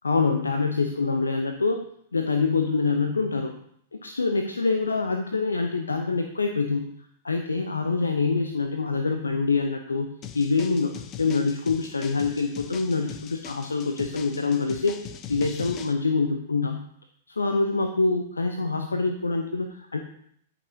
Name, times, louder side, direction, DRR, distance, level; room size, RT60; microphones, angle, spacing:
voice 1, 0.0-1.8 2.1-3.5 4.0-6.9 7.2-10.1 10.3-15.0 15.3-16.8 17.4-20.0, left 4 dB, 75° left, 5 dB, 0.8 m, -25 dB
sound 1, 10.2-15.9, left 9 dB, 30° left, 0.7 m, -41 dB
13.5 x 5.9 x 2.8 m, 0.68 s
figure-of-eight pair, 100°, 0 cm